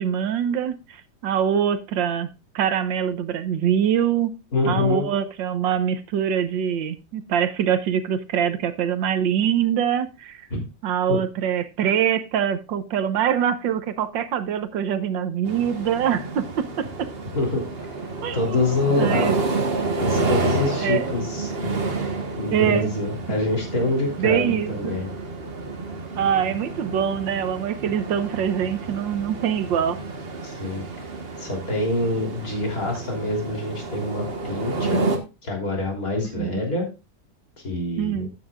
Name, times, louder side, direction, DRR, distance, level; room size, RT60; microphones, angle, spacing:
voice 1, 0.0-2.3 2.5-4.3 4.6-10.4 10.8-17.1 18.2-18.4 19.0-19.3 20.8-21.1 22.5-22.9 24.2-24.9 26.2-30.0 36.4-36.6 38.0-38.3, right 9 dB, 90° right, 1.7 m, -24 dB
voice 2, 4.5-5.1 10.5-10.6 11.1-11.2 17.3-18.0 18.3-19.3 20.0-21.9 22.4-25.1 30.4-30.9 31.4-35.1 35.4-36.9 37.6-38.3, left 2 dB, 50° left, 3.8 m, -26 dB
sound 1, 15.5-35.2, right 3 dB, 35° right, 1.4 m, -29 dB
13.0 x 9.3 x 2.4 m
omnidirectional pair, 2.0 m